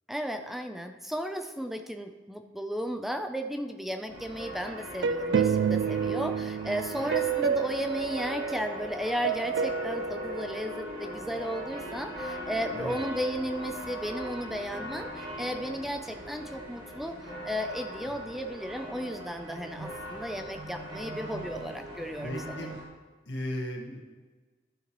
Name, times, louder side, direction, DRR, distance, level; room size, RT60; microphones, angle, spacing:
voice 1, 0.1-22.7, equal, ahead, 6 dB, 0.5 m, -34 dB
sound 1, 4.1-22.8, equal, 50° right, 2.6 m, -40 dB
sound 2, 5.0-8.8 9.2-11.3, right 7 dB, 70° right, 0.3 m, -29 dB
voice 2, 22.2-22.7 23.3-24.0, left 1 dB, 85° left, -1 dB, 1.7 m, -36 dB
12.5 x 7.0 x 3.0 m, 1.3 s
head